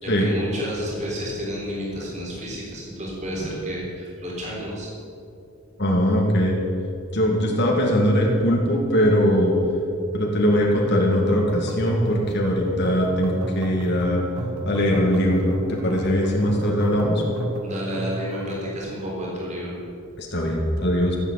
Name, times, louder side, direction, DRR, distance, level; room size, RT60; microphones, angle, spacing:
voice 1, 0.0-4.9 17.6-19.7, equal, 30° right, -4 dB, 3.8 m, -31 dB
voice 2, 5.8-6.6 7.1-9.5 10.1-14.2 14.7-15.5 15.8-17.2 20.2-21.2, equal, 50° left, -1 dB, 2.0 m, -21 dB
sound 1, 11.1-18.7, right 1 dB, 85° right, 1.7 m, -34 dB
15.0 x 8.2 x 8.2 m, 2.6 s
head